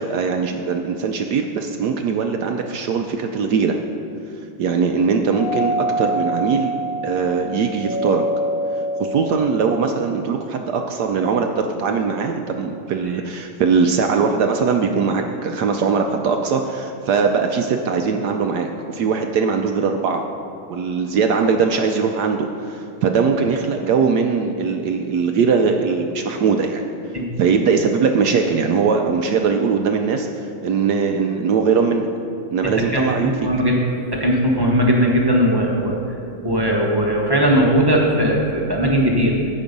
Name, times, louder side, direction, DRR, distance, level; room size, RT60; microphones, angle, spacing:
voice 1, 0.0-3.8 4.6-6.7 7.0-8.2 9.0-20.2 20.7-26.9 27.4-30.3 30.6-32.1 32.5-33.5, right 5 dB, 75° right, 4 dB, 0.9 m, -20 dB
Doorbell, 5.3-10.2, equal, 35° left, 1.2 m, -26 dB
voice 2, 32.9-33.8 34.1-36.0 36.4-39.4, equal, 20° right, -2 dB, 0.6 m, -18 dB
15.5 x 5.3 x 5.3 m, 2.6 s
omnidirectional pair, 2.3 m